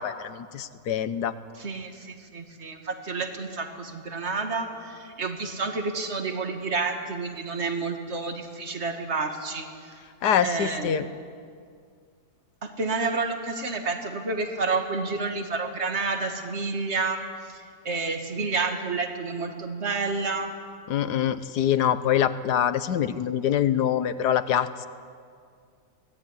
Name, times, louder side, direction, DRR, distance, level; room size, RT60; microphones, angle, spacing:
voice 1, 0.0-1.3 10.2-11.1 20.9-24.9, left 9 dB, 75° left, 13 dB, 1.5 m, -25 dB
voice 2, 1.6-9.7 10.4-10.9 12.6-17.2 17.5-17.6 17.9-20.6, right 4 dB, 40° right, 5 dB, 2.2 m, -29 dB
23.5 x 17.5 x 9.8 m, 2.2 s
omnidirectional pair, 1.8 m